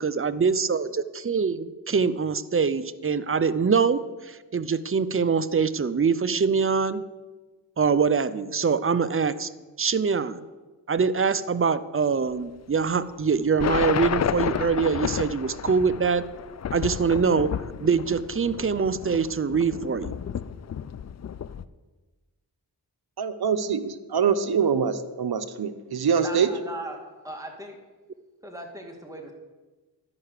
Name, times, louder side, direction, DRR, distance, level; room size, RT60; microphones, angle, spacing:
voice 1, 0.0-7.0 7.8-9.5 9.8-10.4 10.9-16.2 16.7-17.5 17.8-20.2, right 5 dB, 30° right, 14 dB, 0.6 m, -24 dB
sound 1, 13.6-21.7, left 8 dB, 40° left, 0.4 m, -31 dB
voice 2, 23.2-26.5, right 6 dB, 65° right, 9 dB, 0.9 m, -24 dB
voice 3, 26.2-27.8 28.4-29.3, right 1 dB, 10° right, 1 dB, 2.2 m, -38 dB
12.0 x 5.7 x 6.6 m, 1.3 s
cardioid pair, 45°, 41 cm